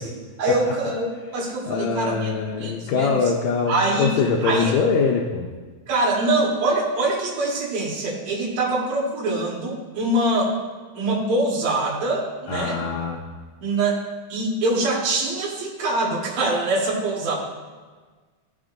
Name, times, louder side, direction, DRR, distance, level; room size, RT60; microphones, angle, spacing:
voice 1, 0.4-2.3 2.6-3.1 3.7-4.7 5.9-10.5 10.9-12.8 13.6-14.0 14.3-17.4, right 2 dB, 65° right, -4 dB, 2.8 m, -24 dB
voice 2, 1.7-5.5 12.5-13.2, left 5 dB, 75° left, 0 dB, 1.8 m, -23 dB
15.5 x 5.2 x 2.5 m, 1.4 s
omnidirectional pair, 3.4 m